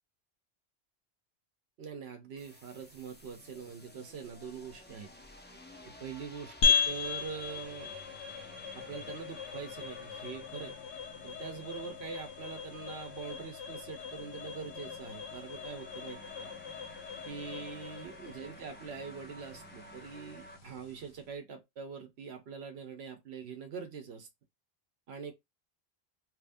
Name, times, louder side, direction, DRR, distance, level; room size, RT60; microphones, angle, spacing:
voice 1, 1.8-5.1 5.8-7.9 8.7-10.7 11.2-16.5 17.3-24.3 25.1-25.3, right 6 dB, 80° right, 1.0 m, -44 dB
sound 1, 2.4-20.6, left 1 dB, 15° left, 0.4 m, -53 dB
sound 2, 6.6-21.2, left 6 dB, 85° left, 1.1 m, -37 dB
3.2 x 2.5 x 3.4 m
omnidirectional pair, 1.1 m